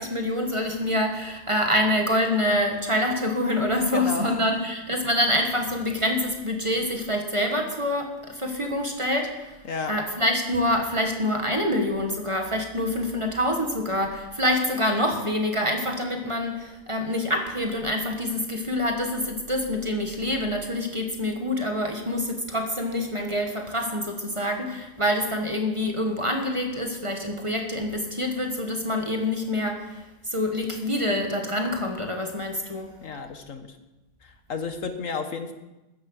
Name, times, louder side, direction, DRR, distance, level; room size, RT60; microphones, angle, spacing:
voice 1, 0.0-9.6 9.9-30.0 30.3-32.9, left 1 dB, 20° right, 3 dB, 1.6 m, -26 dB
voice 2, 3.8-4.4 9.7-9.9 33.0-33.8 34.2-35.5, left 4 dB, 65° left, 7 dB, 1.6 m, -32 dB
14.0 x 10.5 x 6.5 m, 1.0 s
omnidirectional pair, 1.5 m